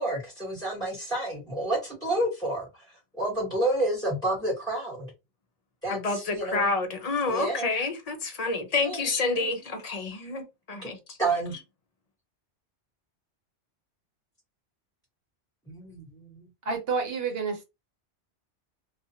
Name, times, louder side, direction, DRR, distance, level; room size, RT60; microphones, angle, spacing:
voice 1, 0.0-2.7 3.2-5.1 5.8-6.7 7.2-7.7 8.8-9.5 10.8-10.9 11.2-11.5 16.3-16.4, right 2 dB, 5° left, 1.2 m, -29 dB
voice 2, 5.9-11.2, left 3 dB, 40° left, 0.6 m, -29 dB
voice 3, 16.6-17.6, right 4 dB, 60° right, 1.0 m, -29 dB
2.4 x 2.4 x 2.7 m
omnidirectional pair, 1.2 m